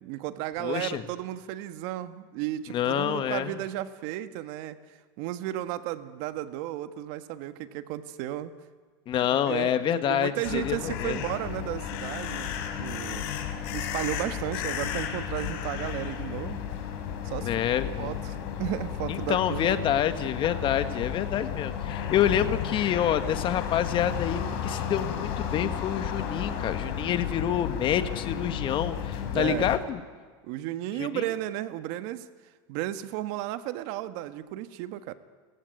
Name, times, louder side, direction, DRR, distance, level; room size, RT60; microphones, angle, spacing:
voice 1, 0.0-4.8 5.2-8.5 9.5-9.7 10.1-13.3 13.7-16.6 17.2-17.5 18.0-19.8 29.3-29.7 30.4-32.3 32.7-35.1, right 14 dB, 60° right, 10 dB, 1.5 m, -34 dB
voice 2, 0.6-1.0 2.7-3.6 9.1-11.2 17.4-18.2 19.1-30.0 31.0-31.3, left 10 dB, 40° left, 10 dB, 1.7 m, -27 dB
sound 1, 10.4-29.8, left 8 dB, 65° left, 3.8 m, -33 dB
29.5 x 15.0 x 9.4 m, 1.5 s
supercardioid pair, 120°, 13 cm